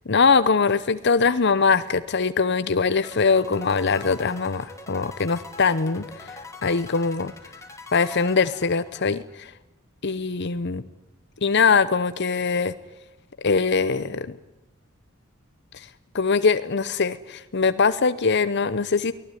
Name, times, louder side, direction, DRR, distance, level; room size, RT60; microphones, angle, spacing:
voice 1, 0.1-7.3 7.9-9.5 10.0-10.8 11.4-12.7 13.4-14.4 15.7-15.9 16.1-19.1, left 5 dB, 55° left, 13 dB, 0.8 m, -22 dB
sound 1, 3.0-9.3, left 3 dB, 15° left, 3.0 m, -43 dB
23.5 x 18.5 x 10.0 m, 0.97 s
head